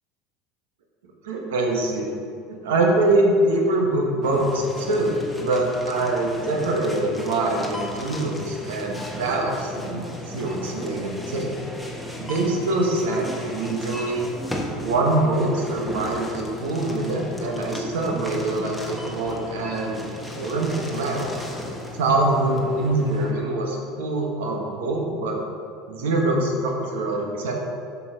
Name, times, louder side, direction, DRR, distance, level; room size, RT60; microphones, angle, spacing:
voice 1, 1.2-2.1 2.5-11.5 12.2-14.3 14.8-20.1 20.3-21.3 21.9-25.4 25.9-27.6, right 2 dB, 85° right, 0 dB, 1.5 m, -24 dB
sound 1, 4.2-23.3, left 1 dB, ahead, 1.3 m, -35 dB
8.3 x 5.8 x 5.0 m, 2.3 s
supercardioid pair, 110°, 0 cm